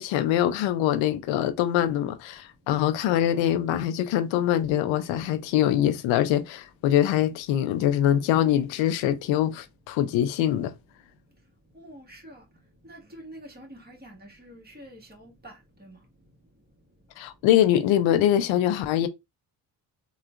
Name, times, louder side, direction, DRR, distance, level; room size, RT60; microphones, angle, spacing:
voice 1, 0.0-10.7 17.2-19.1, left 11 dB, 85° left, 0.5 m, -23 dB
voice 2, 11.8-12.4 12.8-15.5 15.8-16.0, right 1 dB, 20° right, 1.6 m, -46 dB
3.6 x 2.4 x 2.4 m
supercardioid pair, 70°, 45 cm